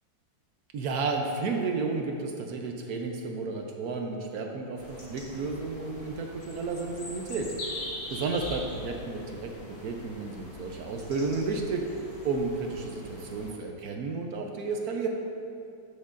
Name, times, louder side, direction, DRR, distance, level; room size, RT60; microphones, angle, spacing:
voice 1, 0.7-7.8 8.1-15.1, right 4 dB, 65° right, 2 dB, 1.0 m, -32 dB
sound 1, 4.8-13.5, left 1 dB, 45° left, 1.7 m, -42 dB
13.5 x 6.3 x 2.5 m, 2.6 s
omnidirectional pair, 2.1 m